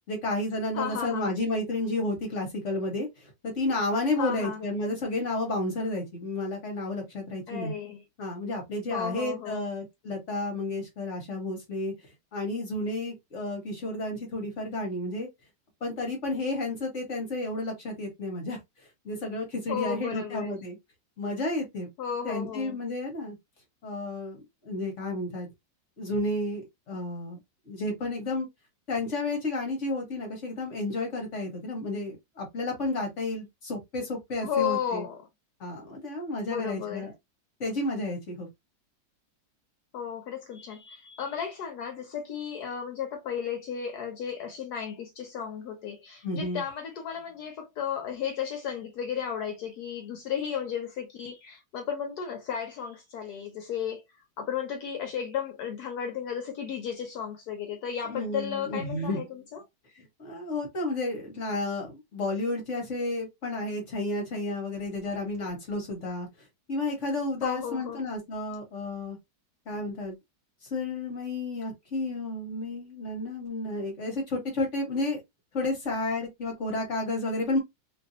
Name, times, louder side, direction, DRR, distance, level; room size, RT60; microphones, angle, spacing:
voice 1, 0.1-7.7 8.2-11.9 12.3-15.3 15.8-18.6 19.0-20.8 21.2-21.9 22.2-23.3 23.8-25.5 26.0-27.4 27.7-28.5 28.9-35.0 35.6-37.1 37.6-38.5 46.2-46.6 58.1-59.2 60.0-66.3 66.7-69.2 69.7-70.1 70.7-75.2 75.5-77.6, left 2 dB, 50° left, 1.1 m, -31 dB
voice 2, 0.7-1.4 4.2-4.6 7.5-8.0 8.9-9.6 19.7-20.6 22.0-22.8 34.4-35.2 36.5-37.1 39.9-59.6 67.4-68.0, left 8 dB, 70° left, 1.0 m, -34 dB
2.9 x 2.6 x 2.4 m
omnidirectional pair, 1.9 m